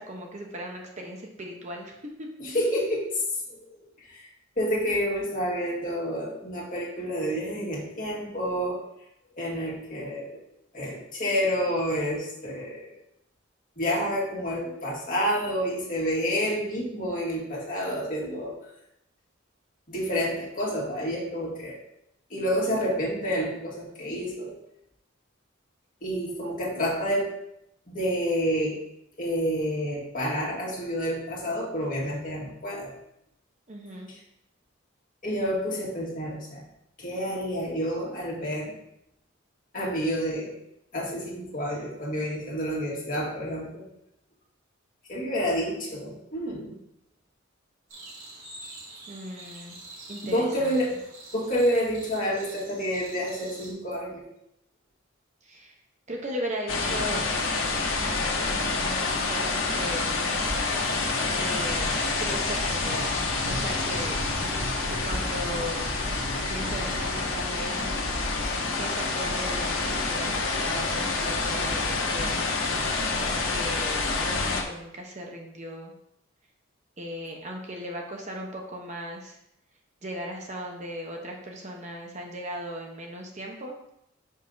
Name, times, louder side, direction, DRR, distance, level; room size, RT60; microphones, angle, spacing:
voice 1, 0.0-2.3 33.7-34.1 49.1-49.8 50.1-50.7 55.4-55.7 56.1-57.2 58.4-60.2 61.3-61.9 62.2-63.1 63.4-64.2 64.9-65.9 66.5-68.0 68.7-72.5 73.5-75.9 77.0-79.4 80.0-83.7, equal, 35° right, 0 dB, 1.0 m, -37 dB
voice 2, 2.4-3.0 3.5-4.3 4.6-8.8 9.4-10.4 10.7-12.9 13.8-18.5 19.9-21.8 22.3-24.5 26.0-27.3 27.9-28.8 29.2-32.9 35.2-36.6 37.0-38.8 39.7-40.5 40.9-43.8 45.1-46.7 50.2-50.9 51.3-54.3, equal, 40° left, -3 dB, 1.9 m, -29 dB
sound 1, 47.9-53.7, right 2 dB, 90° right, 2.5 m, -45 dB
sound 2, 56.7-74.6, left 3 dB, 75° left, 1.0 m, -28 dB
sound 3, 60.7-67.2, equal, 55° right, 2.5 m, -37 dB
5.8 x 5.4 x 3.9 m, 0.79 s
head